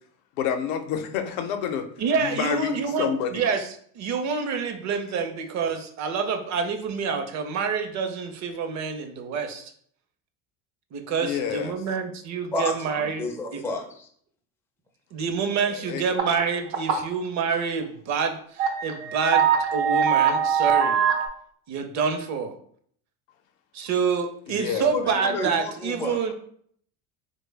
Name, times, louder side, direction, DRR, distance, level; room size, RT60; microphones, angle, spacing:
voice 1, 0.4-1.9 2.2-3.5 11.2-11.8 15.7-16.0 24.5-24.9, left 8 dB, 80° left, 7 dB, 0.6 m, -28 dB
voice 2, 2.0-3.7 3.9-9.7 10.9-13.3 13.5-13.6 15.1-21.1 21.7-22.6 23.7-26.3, right 5 dB, 45° right, 7 dB, 0.6 m, -27 dB
voice 3, 13.2-14.1 24.9-26.3, left 2 dB, 5° left, 2 dB, 0.4 m, -31 dB
sound 1, 16.2-16.4 16.7-17.1 17.5-17.6 18.3-18.4 18.6-21.3, right 7 dB, 75° right, 0.7 m, -22 dB
3.2 x 2.1 x 3.2 m, 0.62 s
supercardioid pair, 90°, 40 cm